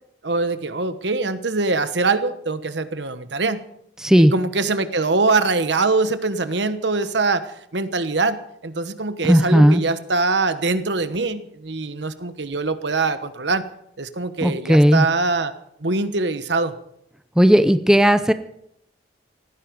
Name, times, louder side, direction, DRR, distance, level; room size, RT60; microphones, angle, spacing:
voice 1, 0.2-3.6 4.2-13.6 14.0-15.5 15.8-16.7, right 3 dB, 65° right, 11 dB, 1.3 m, -23 dB
voice 2, 4.0-4.3 9.2-9.8 14.4-15.1 17.4-18.3, equal, 5° right, 10 dB, 0.6 m, -14 dB
18.0 x 15.0 x 5.3 m, 0.76 s
head